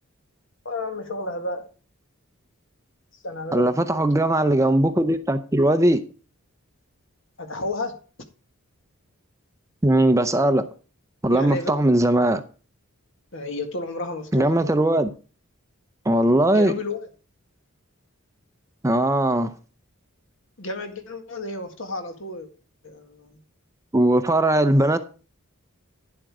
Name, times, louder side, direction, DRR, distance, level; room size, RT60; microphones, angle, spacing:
voice 1, 0.7-1.7 3.2-3.7 7.4-8.0 11.3-11.7 13.3-14.5 16.5-17.0 20.6-22.5 22.8-23.4, left 2 dB, 60° left, 1.8 m, -31 dB
voice 2, 3.5-6.0 9.8-10.7 11.2-12.4 14.3-15.1 16.0-16.7 18.8-19.5 23.9-25.0, right 1 dB, 15° right, 0.6 m, -19 dB
10.5 x 7.6 x 4.8 m
head